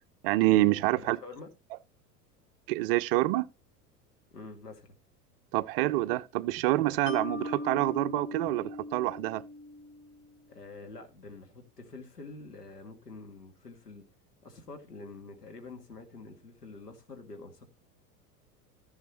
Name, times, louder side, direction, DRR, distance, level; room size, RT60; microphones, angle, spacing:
voice 1, 0.2-1.2 2.7-3.5 5.5-9.4, right 17 dB, 40° right, 0.5 m, -27 dB
voice 2, 1.0-1.5 4.3-4.9 10.5-14.0 14.4-17.7, left 3 dB, 80° left, 2.2 m, -47 dB
Mallet percussion, 7.1-10.3, left 2 dB, 30° left, 1.6 m, -39 dB
15.0 x 6.3 x 3.1 m
figure-of-eight pair, 80°, 46 cm